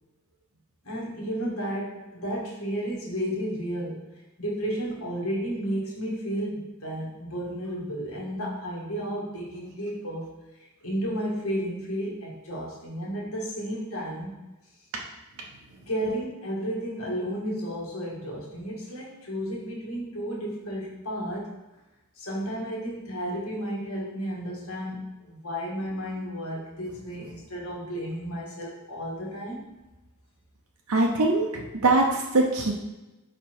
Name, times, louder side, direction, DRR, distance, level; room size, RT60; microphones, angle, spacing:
voice 1, 0.8-4.1 4.4-10.3 10.8-14.3 15.9-21.6 22.2-29.7, equal, 75° left, -4 dB, 2.1 m, -32 dB
voice 2, 30.9-32.7, right 2 dB, 90° right, 0 dB, 0.8 m, -22 dB
5.0 x 4.4 x 4.6 m, 1.0 s
head